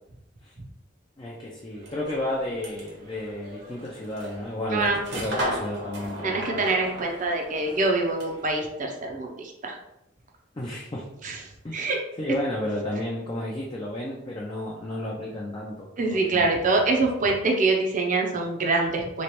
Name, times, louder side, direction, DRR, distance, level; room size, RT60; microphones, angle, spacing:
voice 1, 1.2-6.6 10.5-11.1 11.6-11.8 12.2-16.5, left 1 dB, 25° left, -3 dB, 0.4 m, -32 dB
sound 1, 1.7-8.5, equal, 60° right, 1.0 m, -36 dB
voice 2, 4.7-5.0 6.2-9.8 11.2-11.4 11.7-12.0 16.0-19.2, right 3 dB, 45° right, 2 dB, 0.6 m, -25 dB
3.1 x 3.0 x 3.0 m, 0.87 s
head